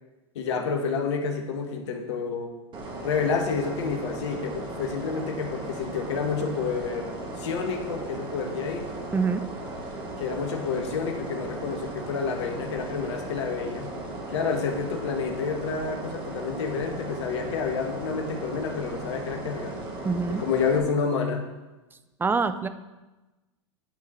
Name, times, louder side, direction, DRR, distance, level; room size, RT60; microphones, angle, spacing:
voice 1, 0.3-2.5 3.0-8.9 10.2-13.9 14.3-19.8 20.3-21.4, left 5 dB, 65° left, 4 dB, 1.4 m, -29 dB
sound 1, 2.7-20.8, right 2 dB, 30° right, 2.1 m, -37 dB
voice 2, 9.1-9.4 20.0-20.4 22.2-22.7, right 4 dB, 15° right, 12 dB, 0.6 m, -25 dB
9.5 x 4.7 x 7.2 m, 1.1 s
hypercardioid pair, 95°, 16 cm